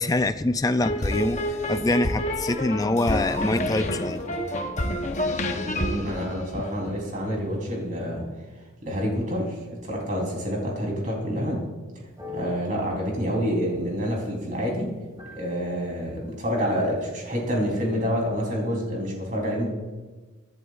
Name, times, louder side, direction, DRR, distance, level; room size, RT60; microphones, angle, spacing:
voice 1, 0.0-4.2 6.5-6.6, left 2 dB, 15° left, 10 dB, 0.4 m, -25 dB
sound 1, 0.8-7.1, left 1 dB, 35° left, 0.9 m, -28 dB
voice 2, 5.7-8.3 8.8-9.6 9.8-11.6 12.3-14.9 15.3-19.7, equal, 40° right, -1 dB, 3.7 m, -27 dB
sound 2, 12.1-18.1, left 3 dB, 20° right, 2.1 m, -46 dB
24.0 x 11.0 x 2.5 m, 1.3 s
head